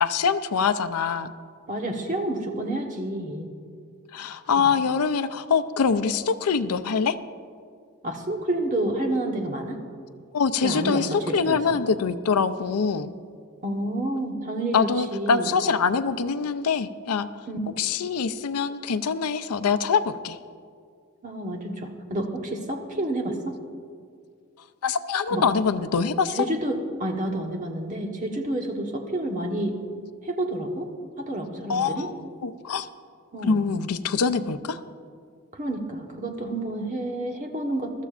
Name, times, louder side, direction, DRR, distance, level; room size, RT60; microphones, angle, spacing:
voice 1, 0.0-1.3 4.1-7.2 10.3-13.1 14.7-17.3 17.8-20.4 24.8-26.5 31.7-32.1 32.4-32.9 33.4-34.8, left 5 dB, 85° left, 12 dB, 0.5 m, -24 dB
voice 2, 1.7-3.5 4.6-4.7 8.0-9.8 10.6-11.0 11.3-11.6 13.6-15.5 17.5-17.8 21.2-23.6 25.3-25.4 26.4-29.8 30.2-30.9 31.2-32.1 33.3-33.6 34.3-34.4 35.5-38.0, right 1 dB, 35° right, 2 dB, 1.3 m, -29 dB
21.0 x 13.0 x 2.5 m, 2.2 s
head